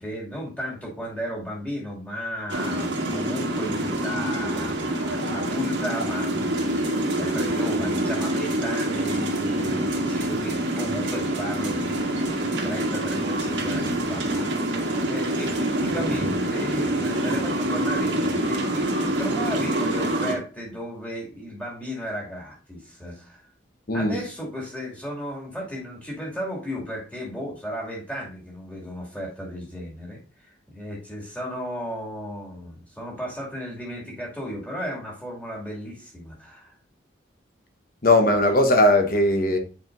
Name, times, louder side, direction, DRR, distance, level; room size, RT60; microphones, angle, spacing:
voice 1, 0.0-12.4 12.6-14.5 15.1-23.4 23.9-36.7, equal, 10° left, 2.2 m, -34 dB
sound 1, 2.5-20.4, right 1 dB, 85° right, 1.5 m, -26 dB
voice 2, 38.0-39.6, left 1 dB, 50° left, 1.0 m, -18 dB
8.5 x 4.6 x 2.5 m
head